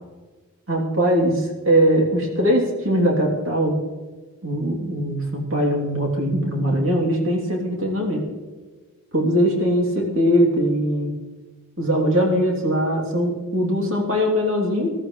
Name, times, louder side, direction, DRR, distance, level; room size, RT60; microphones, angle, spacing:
voice 1, 0.7-3.8 4.4-8.2 9.1-11.1 11.8-14.9, equal, 60° right, -1 dB, 3.0 m, -21 dB
20.0 x 13.5 x 3.2 m, 1.4 s
head